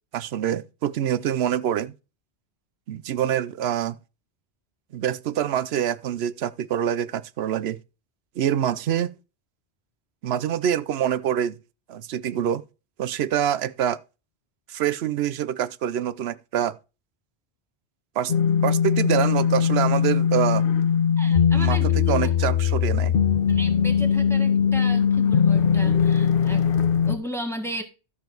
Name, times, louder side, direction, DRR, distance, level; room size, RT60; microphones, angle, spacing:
voice 1, 0.1-1.9 2.9-4.0 4.9-7.8 8.4-9.1 10.2-11.6 11.9-12.6 13.0-14.0 14.7-16.8 18.2-18.3 18.6-20.6 21.2-23.1, right 10 dB, 70° right, 0.9 m, -25 dB
sound 1, 18.3-27.2, left 7 dB, 55° left, 1.0 m, -20 dB
voice 2, 21.2-21.9 22.2-22.3 23.5-26.7 27.1-27.8, right 1 dB, ahead, 1.6 m, -35 dB
13.0 x 6.8 x 3.9 m
omnidirectional pair, 1.1 m